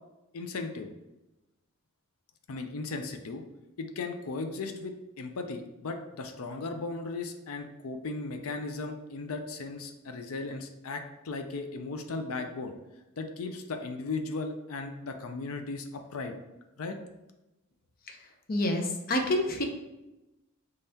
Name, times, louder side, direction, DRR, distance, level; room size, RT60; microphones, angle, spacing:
voice 1, 0.3-0.9 2.5-3.4 3.8-12.7 13.2-16.3 16.8-17.0, left 3 dB, 85° left, 6 dB, 0.5 m, -36 dB
voice 2, 18.5-19.6, left 1 dB, 45° left, 3 dB, 0.6 m, -28 dB
5.4 x 3.3 x 2.8 m, 1.0 s
head